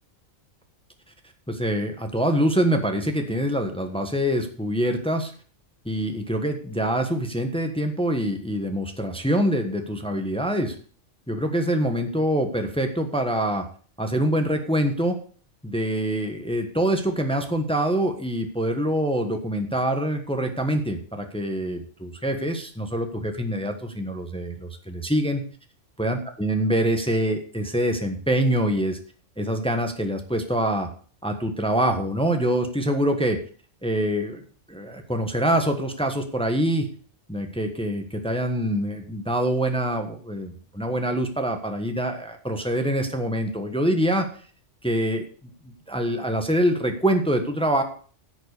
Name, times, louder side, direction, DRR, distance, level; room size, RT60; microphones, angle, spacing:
voice 1, 1.5-5.3 5.8-10.8 11.3-13.6 14.0-15.2 15.6-25.4 26.0-29.0 29.4-30.9 31.2-33.4 33.8-34.4 34.7-36.9 37.3-44.3 44.8-45.2 45.6-47.8, right 1 dB, 5° left, 5 dB, 1.3 m, -25 dB
10.5 x 7.1 x 6.6 m, 0.43 s
omnidirectional pair, 1.3 m